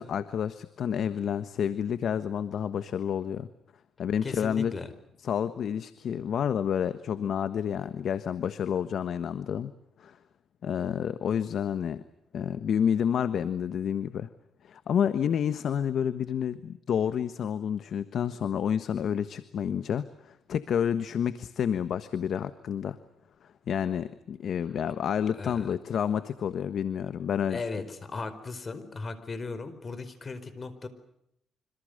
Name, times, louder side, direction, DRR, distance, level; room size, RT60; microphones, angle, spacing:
voice 1, 0.0-3.5 4.0-4.7 5.2-9.7 10.0-10.2 10.6-12.0 12.3-14.3 14.6-23.0 23.7-27.7, left 8 dB, 65° left, 12 dB, 1.3 m, -29 dB
voice 2, 4.2-4.9 25.3-25.7 27.5-30.9, left 4 dB, 35° left, 13 dB, 4.7 m, -37 dB
27.0 x 26.0 x 6.7 m, 0.77 s
cardioid pair, 90°, 0 cm